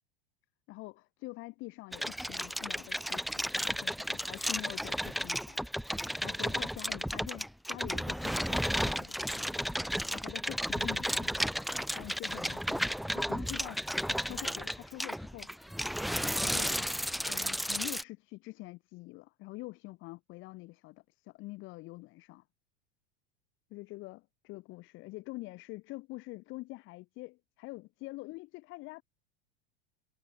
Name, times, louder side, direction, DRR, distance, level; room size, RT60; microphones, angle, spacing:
voice 1, 0.7-5.6 6.2-9.5 10.1-11.4 12.0-15.8 16.4-16.9 17.3-22.4 23.7-29.0, left 21 dB, 40° left, 5.6 m, -46 dB
sound 1, 1.9-18.0, equal, ahead, 0.8 m, -33 dB
supercardioid pair, 160°, 31 cm